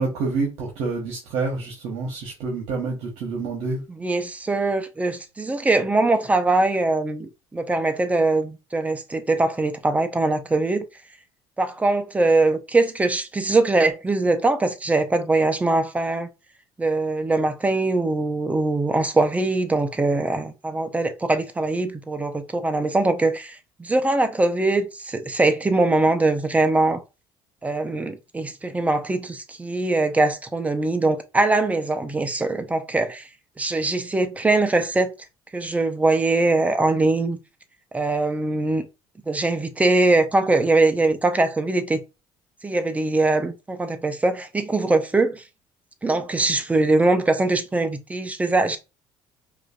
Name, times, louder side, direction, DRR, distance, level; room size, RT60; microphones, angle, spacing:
voice 1, 0.0-3.8, right 3 dB, 80° right, 1.2 m, -27 dB
voice 2, 4.0-10.8 11.6-16.3 16.8-27.0 27.6-33.3 33.6-35.1 35.5-37.4 37.9-38.8 39.3-42.0 42.6-45.4 46.0-48.8, right 2 dB, 15° right, 0.6 m, -22 dB
4.8 x 2.5 x 2.5 m
cardioid pair, 100°, 11 cm